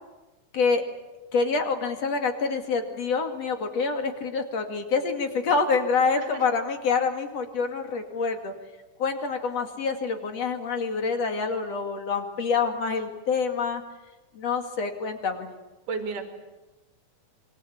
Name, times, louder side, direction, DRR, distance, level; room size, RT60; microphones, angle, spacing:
voice 1, 1.3-8.5 9.0-13.8 14.3-15.5, left 4 dB, 55° left, 5 dB, 3.2 m, -26 dB
voice 2, 6.1-6.4 15.9-16.3, right 5 dB, 75° right, 5 dB, 4.1 m, -32 dB
26.5 x 23.5 x 8.5 m, 1.1 s
omnidirectional pair, 3.8 m